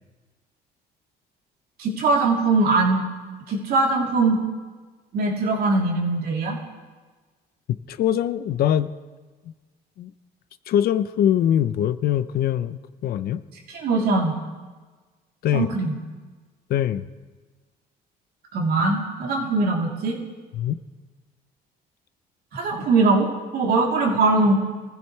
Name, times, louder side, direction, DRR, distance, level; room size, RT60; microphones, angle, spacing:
voice 1, 1.8-3.1 3.5-4.4 5.1-6.6 13.7-14.3 15.5-15.9 18.5-20.2 22.5-24.6, right 3 dB, 65° right, -2 dB, 3.4 m, -21 dB
voice 2, 7.7-8.9 10.0-10.1 10.7-13.4 15.4-15.7 16.7-17.0 20.5-20.8, left 10 dB, 65° left, 13 dB, 0.7 m, -23 dB
24.0 x 15.5 x 3.3 m, 1.4 s
cardioid pair, 110°, 17 cm